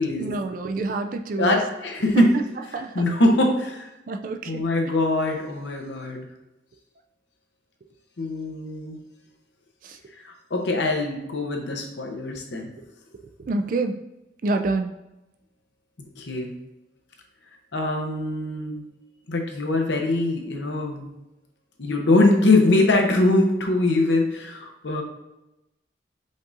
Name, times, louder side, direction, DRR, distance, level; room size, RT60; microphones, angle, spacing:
voice 1, 0.0-1.6 2.2-2.3 2.7-3.0 4.1-4.6 9.8-10.0 13.5-14.0 14.4-14.9, right 3 dB, 50° right, 5 dB, 0.4 m, -27 dB
voice 2, 1.4-2.3 2.7-3.9 4.5-6.3 8.2-9.0 10.2-12.7 16.2-16.5 17.7-18.9 19.3-21.1 21.8-25.0, left 2 dB, 80° left, 2 dB, 0.8 m, -22 dB
5.2 x 3.9 x 2.5 m, 0.92 s
head